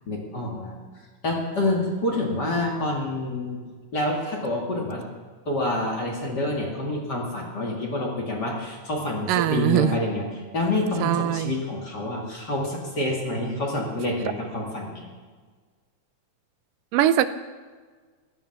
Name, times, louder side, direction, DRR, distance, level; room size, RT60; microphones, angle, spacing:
voice 1, 0.1-0.8 1.2-3.6 3.9-5.0 5.5-10.3 10.5-15.1, left 1 dB, 35° left, -2 dB, 2.4 m, -27 dB
voice 2, 9.3-9.9 11.0-11.5 16.9-17.3, right 12 dB, 85° right, 12 dB, 2.3 m, -21 dB
16.0 x 12.5 x 6.0 m, 1.5 s
omnidirectional pair, 3.8 m